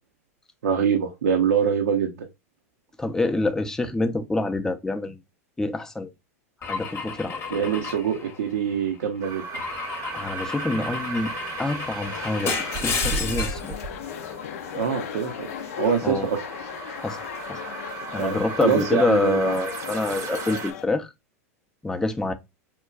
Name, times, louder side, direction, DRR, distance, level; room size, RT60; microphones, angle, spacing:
voice 1, 0.6-2.3 7.5-9.4 14.7-15.5 15.8-16.4 18.2-19.5, right 7 dB, 80° right, 0.6 m, -24 dB
voice 2, 3.0-5.2 5.6-6.1 6.6-7.6 10.1-11.3 11.6-12.6 12.8-13.8 16.0-16.3 17.0-17.2 17.5-17.6 18.1-21.1 21.8-22.3, left 2 dB, 5° left, 0.4 m, -26 dB
Car / Engine / Glass, 6.6-8.8 9.5-13.7, left 5 dB, 30° left, 0.8 m, -32 dB
sound 1, 9.2-20.7, right 4 dB, 40° right, 0.7 m, -36 dB
sound 2, 12.0-20.9, left 10 dB, 70° left, 0.4 m, -37 dB
4.4 x 2.2 x 2.3 m
hypercardioid pair, 100°, 8 cm